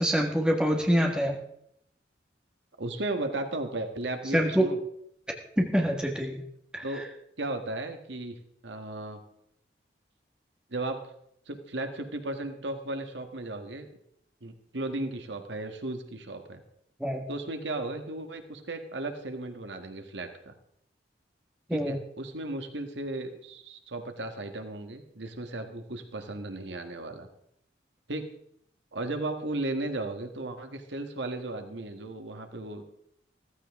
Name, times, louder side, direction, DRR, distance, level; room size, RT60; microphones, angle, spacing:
voice 1, 0.0-1.4 4.3-4.7 5.6-6.4 6.7-6.8 17.0-17.2 21.7-22.0, equal, 5° right, 1 dB, 1.6 m, -25 dB
voice 2, 2.8-4.8 6.8-7.1 7.4-8.4 8.6-9.2 10.7-11.0 11.5-13.9 14.4-16.6 17.3-20.5 21.7-27.3 28.1-28.3 28.9-32.9, right 2 dB, 80° right, 6 dB, 1.5 m, -35 dB
14.5 x 14.5 x 3.6 m, 0.72 s
head